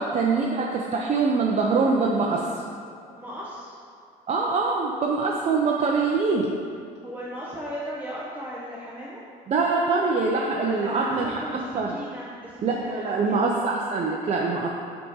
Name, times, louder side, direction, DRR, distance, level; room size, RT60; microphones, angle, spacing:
voice 1, 0.0-2.4 4.3-6.5 9.5-11.9 12.6-14.7, right 4 dB, 40° right, -2 dB, 0.6 m, -24 dB
voice 2, 3.2-3.8 7.0-9.2 10.6-13.4, equal, 10° right, -7 dB, 0.8 m, -37 dB
5.7 x 3.6 x 5.5 m, 2.5 s
cardioid pair, 110°, 17 cm